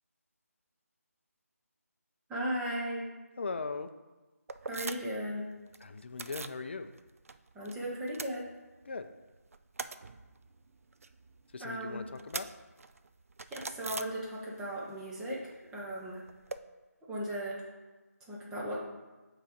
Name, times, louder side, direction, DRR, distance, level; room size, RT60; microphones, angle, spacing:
voice 1, 2.3-3.0 4.6-5.4 7.5-8.4 11.6-12.0 13.5-16.2 17.1-17.7 18.3-18.8, equal, 5° right, -5 dB, 0.7 m, -36 dB
voice 2, 3.4-3.9 5.8-6.9 8.9-9.1 11.5-12.5, left 4 dB, 40° left, 9 dB, 0.5 m, -39 dB
sound 1, 4.5-5.3 5.5-6.6 7.0-7.7 8.0-9.0 9.3-14.7 15.0-16.6, right 4 dB, 60° right, 0.4 m, -44 dB
7.4 x 4.0 x 5.0 m, 1.2 s
figure-of-eight pair, 165°, 9 cm